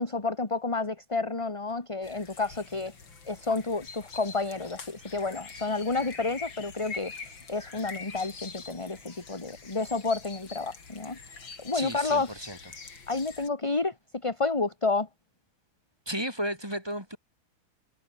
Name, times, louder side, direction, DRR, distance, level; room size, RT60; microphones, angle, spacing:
voice 1, 0.0-2.9 3.3-11.2 11.6-12.3 13.1-13.9 14.2-15.1, left 3 dB, 15° left, 1.7 m, -30 dB
sound 1, 2.0-13.5, left 4 dB, 60° left, 4.1 m, -45 dB
voice 2, 11.7-12.6 16.1-17.2, equal, 10° right, 7.3 m, -33 dB
omnidirectional pair, 2.3 m